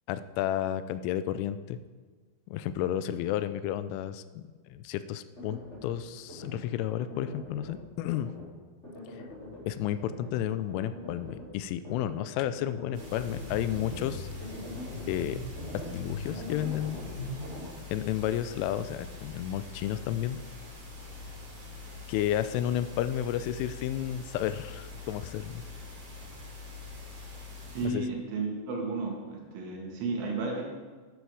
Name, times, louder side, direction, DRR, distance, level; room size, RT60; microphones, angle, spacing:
voice 1, 0.1-1.8 2.5-8.3 9.7-14.3 15.1-15.4 15.9-17.0 17.9-20.4 22.1-25.6 27.8-28.0, left 11 dB, 90° left, 13 dB, 3.1 m, -32 dB
sound 1, 5.4-5.9 6.3-6.6 7.0-7.8 8.1-8.5 8.8-9.6 10.0-10.3 10.7-11.5 11.8-12.2 12.5-17.7, left 1 dB, 15° left, 3.5 m, -41 dB
sound 2, 12.9-27.9, left 3 dB, 45° right, 4.9 m, -44 dB
voice 2, 27.7-30.6, right 3 dB, 75° right, 0 dB, 4.5 m, -33 dB
11.5 x 11.5 x 4.9 m, 1.5 s
omnidirectional pair, 5.6 m